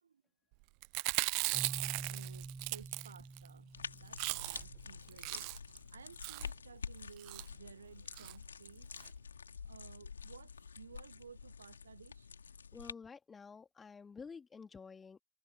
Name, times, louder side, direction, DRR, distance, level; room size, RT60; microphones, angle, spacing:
Chewing mastication, 0.8-3.5 3.8-3.9 4.1-4.8 5.1-5.8 6.2-6.5 7.2-7.5 8.1-8.3 8.7-8.8 9.0-9.1, right 40 dB or more, 45° right, 0.7 m, -37 dB
Keyboard (musical), 1.5-5.2, right 3 dB, 10° right, 1.7 m, -48 dB
voice 1, 1.9-5.6 5.9-8.9 9.6-12.3, right 6 dB, 70° right, 1.5 m, -56 dB
sound 1, 3.7-12.9, left 6 dB, 70° left, 3.5 m, -48 dB
voice 2, 12.7-15.2, left 5 dB, 15° left, 3.8 m, -51 dB
figure-of-eight pair, 90°, 0 cm